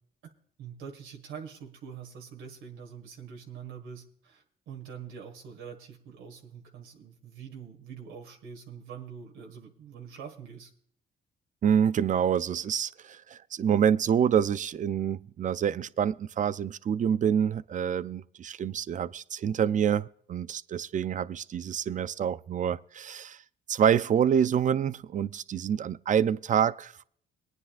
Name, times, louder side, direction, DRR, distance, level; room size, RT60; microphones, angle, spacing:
voice 1, 0.6-10.7, right 7 dB, 85° right, 1.7 m, -44 dB
voice 2, 11.6-23.4 23.7-27.0, right 8 dB, 40° right, 0.4 m, -27 dB
23.0 x 9.7 x 2.4 m
cardioid pair, 90°, 20 cm